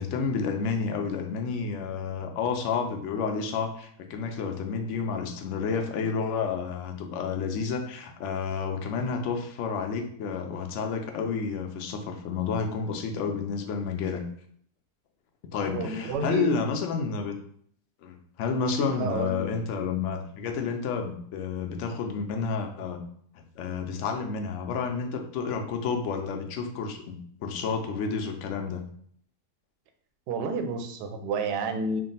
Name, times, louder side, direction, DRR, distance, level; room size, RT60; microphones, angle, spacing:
voice 1, 0.0-14.2 15.4-17.4 18.0-23.0 23.3-28.8, left 5 dB, 70° left, 5 dB, 0.7 m, -30 dB
voice 2, 15.6-16.6 18.9-19.5 30.3-32.0, right 4 dB, 90° right, 6 dB, 1.2 m, -30 dB
3.5 x 2.2 x 3.9 m, 0.62 s
omnidirectional pair, 1.7 m